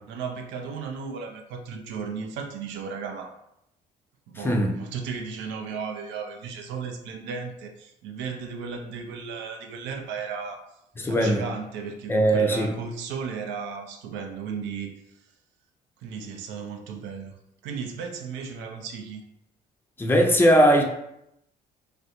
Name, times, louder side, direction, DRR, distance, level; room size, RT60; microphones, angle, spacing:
voice 1, 0.1-3.4 4.3-10.6 11.1-14.9 16.0-17.4 17.6-19.2, right 5 dB, 60° right, 4 dB, 0.5 m, -35 dB
voice 2, 11.0-11.4 12.1-12.7 20.0-20.8, right 1 dB, 10° left, 2 dB, 0.5 m, -19 dB
3.3 x 2.5 x 2.4 m, 0.80 s
figure-of-eight pair, 50°, 21 cm